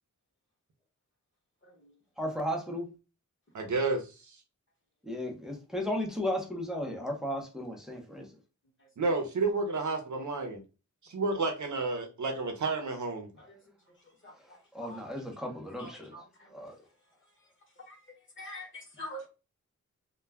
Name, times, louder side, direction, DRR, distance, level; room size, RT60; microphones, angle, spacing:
voice 1, 2.2-2.9 5.0-8.3 14.7-16.1 16.5-16.7, left 1 dB, ahead, 0.6 m, -34 dB
voice 2, 3.5-4.4 9.0-10.6 11.0-13.3, right 3 dB, 65° right, 0.7 m, -31 dB
voice 3, 14.2-15.0 15.8-16.5 17.8-19.3, left 1 dB, 40° left, 1.1 m, -46 dB
2.2 x 2.1 x 3.4 m
wide cardioid pair, 135°, 32 cm